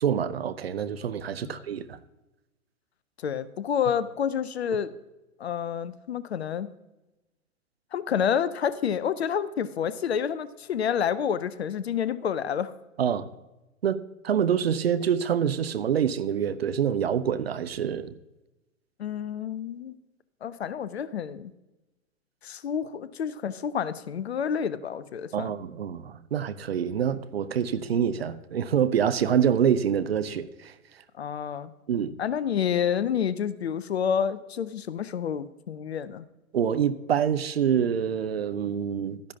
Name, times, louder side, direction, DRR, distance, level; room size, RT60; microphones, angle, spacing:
voice 1, 0.0-2.0 13.0-13.3 13.8-14.0 14.2-18.1 25.3-30.7 31.9-32.1 36.5-39.2, right 8 dB, 50° right, 0.6 m, -26 dB
voice 2, 3.2-4.9 5.4-6.7 7.9-12.7 19.0-19.9 20.4-21.5 22.4-25.5 31.2-31.7 32.2-36.2, left 8 dB, 50° left, 0.6 m, -29 dB
12.5 x 10.5 x 2.8 m
figure-of-eight pair, 115°, 41 cm